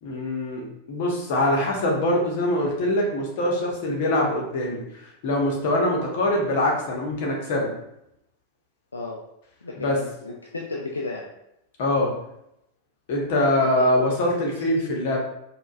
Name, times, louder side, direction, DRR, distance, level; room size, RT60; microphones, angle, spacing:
voice 1, 0.0-7.7 9.8-10.0 11.8-12.1 13.1-15.2, left 1 dB, 50° left, -1 dB, 1.0 m, -23 dB
voice 2, 9.6-11.2 13.6-13.9 14.3-14.4, left 3 dB, 75° left, -1 dB, 0.4 m, -33 dB
4.9 x 2.3 x 2.4 m, 0.80 s
figure-of-eight pair, 90°, 0 cm